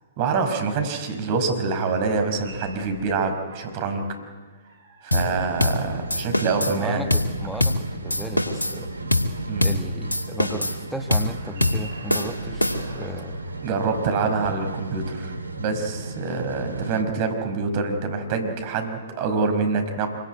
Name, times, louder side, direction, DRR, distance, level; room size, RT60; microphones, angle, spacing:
voice 1, 0.2-4.0 5.0-7.0 9.5-9.8 13.6-20.1, right 4 dB, 40° right, 6 dB, 5.4 m, -26 dB
sound 1, 2.0-4.0 4.6-7.1 11.2-14.3, right 3 dB, 60° right, 5.0 m, -43 dB
sound 2, 5.1-5.3 5.6-5.8 6.1-6.8 7.1-7.3 7.6-7.8 8.1-8.8 9.1-9.3 9.6-9.8 10.1-10.8 11.1-11.3 11.6-11.8 12.1-13.0, left 1 dB, 90° left, 2.5 m, -23 dB
sound 3, 5.1-17.0, right 2 dB, 85° right, 2.1 m, -35 dB
voice 2, 6.7-8.9 9.6-13.4, right 1 dB, ahead, 5 dB, 1.7 m, -35 dB
26.0 x 23.5 x 9.5 m, 1.5 s
figure-of-eight pair, 120°, 0 cm